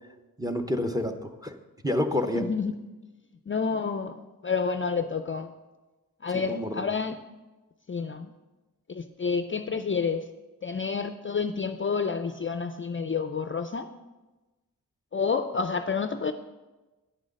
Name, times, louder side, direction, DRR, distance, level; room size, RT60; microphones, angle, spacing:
voice 1, 0.4-1.5 1.8-2.4 6.5-6.9, left 1 dB, 10° right, 6 dB, 0.7 m, -28 dB
voice 2, 2.3-2.8 3.5-4.2 4.4-5.5 6.2-7.2 7.9-8.3 8.9-10.3 10.6-13.9 15.1-16.3, left 5 dB, 35° left, 9 dB, 0.4 m, -29 dB
9.3 x 6.3 x 6.4 m, 1.1 s
wide cardioid pair, 125°, 35 cm